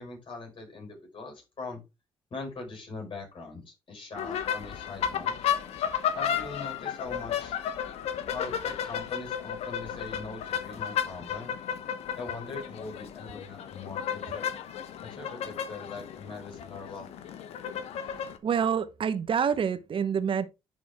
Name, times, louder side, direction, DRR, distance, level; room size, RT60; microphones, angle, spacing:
voice 1, 0.0-1.8 2.3-5.4 6.2-7.6 8.3-11.5 12.2-14.4 15.0-17.1, left 3 dB, 50° left, 5.2 m, -41 dB
sound 1, 4.1-18.4, left 9 dB, 70° left, 1.0 m, -33 dB
voice 2, 18.4-20.5, right 7 dB, 55° right, 1.1 m, -27 dB
10.5 x 4.3 x 3.5 m
supercardioid pair, 55°, 11 cm